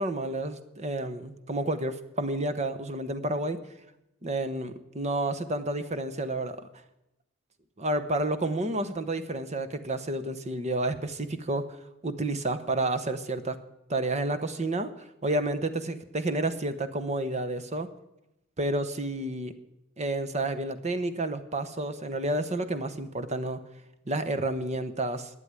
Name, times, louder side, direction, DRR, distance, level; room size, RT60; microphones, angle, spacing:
voice 1, 0.0-3.6 4.2-6.7 7.8-11.7 12.0-13.6 13.9-14.9 15.2-17.9 18.6-19.5 20.0-23.6 24.1-25.3, right 2 dB, 35° right, 11 dB, 1.0 m, -30 dB
11.5 x 9.3 x 9.7 m, 0.90 s
head